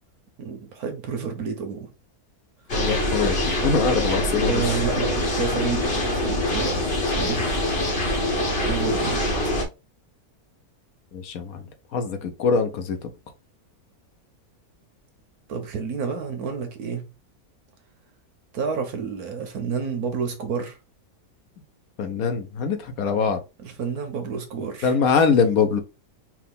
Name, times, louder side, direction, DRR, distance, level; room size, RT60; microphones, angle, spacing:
voice 1, 0.4-1.9 4.5-6.9 7.1-7.5 8.6-9.2 15.5-17.0 18.5-20.8 23.6-25.0, right 5 dB, 80° right, 1.4 m, -29 dB
voice 2, 2.7-4.6 11.1-11.6 11.9-13.1 22.0-23.4 24.8-25.8, left 5 dB, 70° left, 1.3 m, -23 dB
sound 1, 2.7-9.6, left 1 dB, 45° left, 1.3 m, -24 dB
4.8 x 2.5 x 3.5 m
omnidirectional pair, 1.6 m